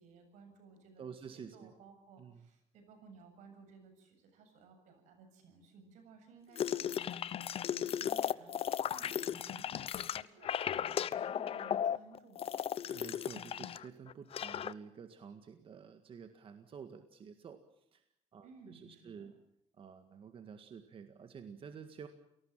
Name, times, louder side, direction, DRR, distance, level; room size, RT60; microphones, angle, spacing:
voice 1, 0.0-12.6 18.4-19.3, right 4 dB, 90° right, 7 dB, 7.4 m, -58 dB
voice 2, 1.0-1.7 2.2-2.5 12.9-18.1 18.3-19.4 19.8-22.1, right 6 dB, 50° right, 8 dB, 1.9 m, -50 dB
sound 1, 6.6-13.8 14.1-14.7, left 9 dB, 55° left, 0.9 m, -36 dB
28.5 x 19.0 x 7.5 m, 0.82 s
cardioid pair, 115°, 12 cm